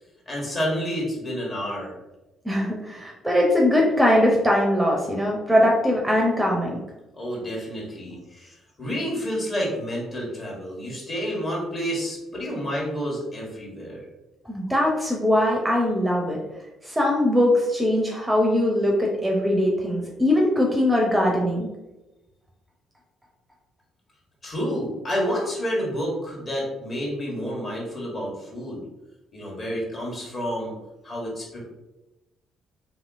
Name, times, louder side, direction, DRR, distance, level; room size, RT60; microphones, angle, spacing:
voice 1, 0.3-1.9 7.2-14.0 24.4-28.8 29.3-30.7 31.0-31.7, equal, 35° left, -3 dB, 1.2 m, -29 dB
voice 2, 2.4-6.8 14.5-16.4 16.8-21.7, left 1 dB, 10° right, -1 dB, 0.5 m, -21 dB
2.8 x 2.7 x 2.5 m, 1.0 s
figure-of-eight pair, 45°, 0 cm